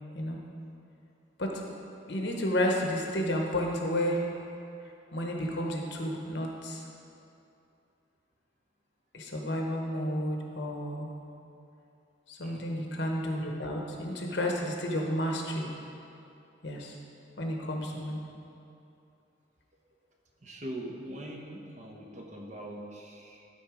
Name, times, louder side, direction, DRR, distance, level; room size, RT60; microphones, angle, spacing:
voice 1, 2.0-4.3 5.1-6.8 9.1-11.1 12.3-15.7 16.6-17.0 17.4-18.2, equal, 60° left, 0 dB, 1.1 m, -31 dB
voice 2, 12.4-12.7 20.4-23.5, right 1 dB, 40° right, 0 dB, 0.9 m, -42 dB
12.5 x 4.3 x 5.0 m, 2.7 s
head